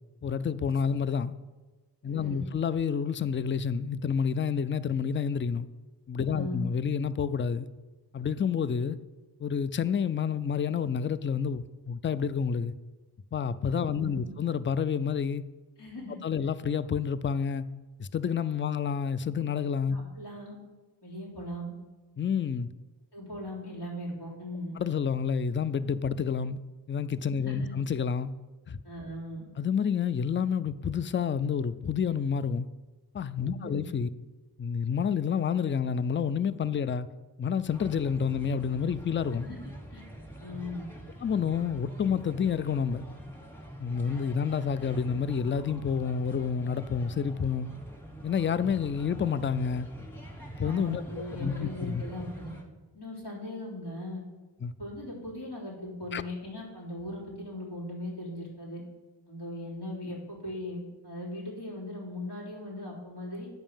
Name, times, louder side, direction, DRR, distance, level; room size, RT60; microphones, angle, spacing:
voice 1, 0.2-1.3 2.0-5.7 6.1-7.7 8.1-9.0 9.4-12.7 13.3-15.4 16.2-17.7 18.0-20.0 22.2-22.7 24.8-26.6 26.9-28.3 28.7-28.8 29.6-32.7 33.1-34.1 34.6-37.1 37.4-39.5 41.2-43.0 43.8-47.7 48.2-49.9 50.6-51.0 51.4-52.0 54.6-54.7 56.1-56.2, left 7 dB, 30° left, 0.4 m, -29 dB
voice 2, 2.1-2.5 6.3-6.7 13.9-14.3 15.8-16.5 19.9-20.6 21.0-21.7 23.1-24.7 27.4-27.7 28.8-29.4 33.5-33.8 39.4-39.6 39.9-40.0 40.4-40.9 50.6-52.5 52.9-54.2 54.8-58.8 59.3-63.5, left 1 dB, 85° left, 3.3 m, -39 dB
sound 1, 37.7-52.6, right 1 dB, 5° left, 1.6 m, -45 dB
9.0 x 5.4 x 7.2 m
wide cardioid pair, 95°, 39 cm